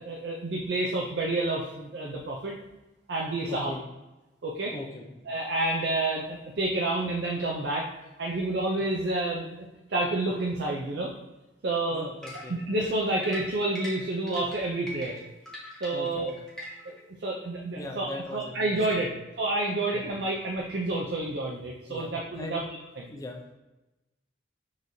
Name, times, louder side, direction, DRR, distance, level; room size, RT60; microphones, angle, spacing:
voice 1, 0.0-2.5 3.1-3.7 4.4-4.7 5.3-7.9 8.2-11.1 11.6-12.1 12.5-15.2 15.8-16.3 16.8-16.9 17.2-19.1 19.4-22.6 23.0-23.1, right 2 dB, 60° right, -1 dB, 0.5 m, -29 dB
voice 2, 3.5-3.8 4.7-5.0 11.9-12.6 15.9-16.2 17.7-19.2 19.9-20.1 21.9-22.1 22.4-22.6 23.1-23.5, left 1 dB, 20° left, 1 dB, 0.5 m, -40 dB
sound 1, 12.2-17.0, equal, 5° left, 0.9 m, -42 dB
6.3 x 3.1 x 2.7 m, 1.0 s
head